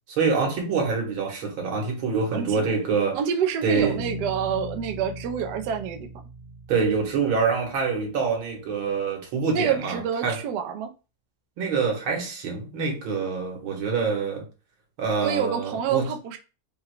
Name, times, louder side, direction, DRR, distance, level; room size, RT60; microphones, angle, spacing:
voice 1, 0.1-3.2 3.6-4.0 6.7-10.4 11.6-14.5 15.0-16.1, right 5 dB, 90° right, 2.2 m, -25 dB
voice 2, 2.3-2.8 3.1-6.1 9.5-10.9 15.2-16.4, right 8 dB, 65° right, 1.1 m, -27 dB
sound 1, 3.8-8.4, right 1 dB, 40° right, 1.2 m, -39 dB
4.8 x 2.2 x 4.6 m
omnidirectional pair, 2.1 m